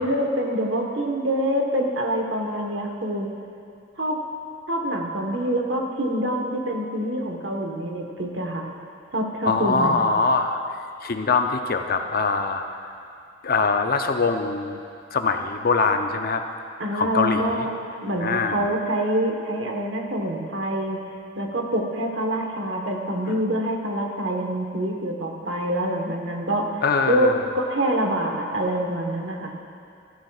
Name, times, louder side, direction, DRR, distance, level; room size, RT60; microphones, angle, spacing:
voice 1, 0.0-3.3 4.0-4.2 4.7-8.7 9.1-10.0 16.8-17.7 18.0-21.0 21.4-26.7 27.1-29.5, right 1 dB, 70° right, 1 dB, 1.3 m, -26 dB
voice 2, 9.4-10.6 11.0-12.6 13.4-14.8 15.1-16.4 16.9-17.7 18.2-18.7 23.3-23.4 26.8-27.4, left 4 dB, 50° left, 6 dB, 0.6 m, -23 dB
14.5 x 13.5 x 2.4 m, 2.4 s
head